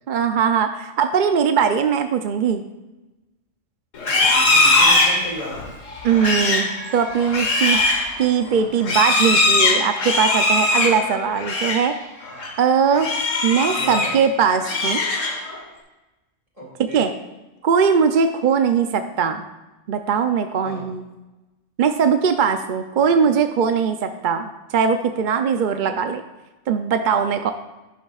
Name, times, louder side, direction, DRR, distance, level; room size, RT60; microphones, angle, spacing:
voice 1, 0.1-2.6 6.0-7.8 8.2-11.9 12.6-13.1 13.4-15.0 16.9-17.1 17.6-19.4 19.9-21.0 21.8-26.2 26.7-27.5, right 6 dB, 55° right, 7 dB, 0.6 m, -20 dB
Livestock farm animals working animals, 4.0-11.9 12.2-12.5 12.9-14.2 14.5-15.6, left 2 dB, 85° left, 1.7 m, -20 dB
voice 2, 4.1-5.7 13.7-14.2 16.6-17.1 20.6-20.9 23.2-23.3, equal, 30° right, -3 dB, 2.0 m, -36 dB
11.5 x 10.5 x 2.4 m, 1.1 s
omnidirectional pair, 1.3 m